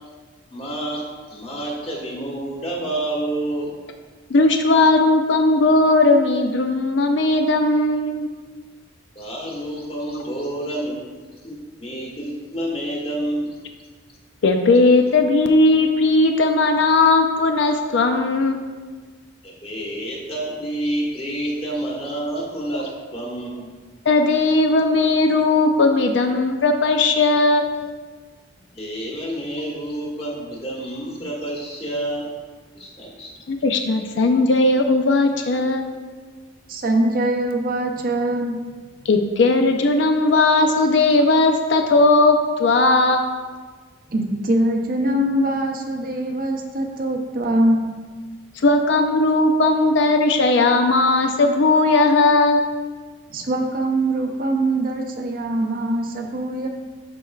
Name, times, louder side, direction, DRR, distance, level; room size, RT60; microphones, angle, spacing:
voice 1, 0.5-1.0 1.3-3.7 9.1-11.0 11.4-13.5 19.4-23.7 28.7-32.3 32.7-33.3, right 1 dB, 30° left, -3 dB, 1.3 m, -28 dB
voice 2, 4.3-8.3 14.4-18.6 22.7-22.8 24.1-27.8 33.5-35.9 39.1-43.2 48.6-52.7, left 2 dB, 60° left, 5 dB, 0.4 m, -17 dB
voice 3, 36.7-38.6 44.1-47.8 53.3-56.7, right 1 dB, 45° right, 2 dB, 0.6 m, -22 dB
11.0 x 4.4 x 2.3 m, 1.4 s
head